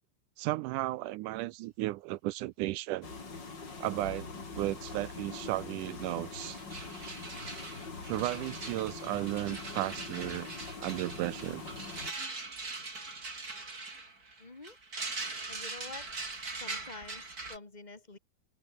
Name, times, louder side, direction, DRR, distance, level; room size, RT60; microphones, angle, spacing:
voice 1, 0.4-3.1 3.8-4.3 4.5-6.6 8.1-10.5 10.8-11.6, right 18 dB, 80° right, 2.0 m, -34 dB
sound 1, 3.0-12.1, left 4 dB, 30° left, 3.8 m, -43 dB
sound 2, 6.0-6.1 6.3-17.6, right 3 dB, 25° right, 4.2 m, -42 dB
voice 2, 14.4-14.8 15.5-16.1 16.5-18.2, left 3 dB, 15° left, 2.2 m, -47 dB
omnidirectional pair, 3.9 m